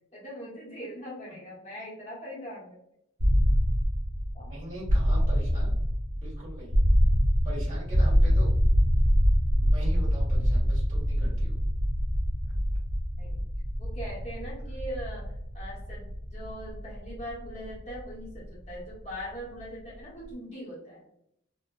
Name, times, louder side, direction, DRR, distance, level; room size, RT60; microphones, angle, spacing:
voice 1, 0.1-2.8 4.3-4.5 13.2-13.5 13.8-21.1, equal, 35° left, -5 dB, 0.9 m, -41 dB
sound 1, 3.2-19.0, equal, 85° right, 1.3 m, -25 dB
voice 2, 4.4-5.8 6.1-6.8 7.4-8.5 9.6-11.6, equal, 40° right, -6 dB, 1.4 m, -42 dB
3.6 x 2.1 x 2.4 m, 0.76 s
head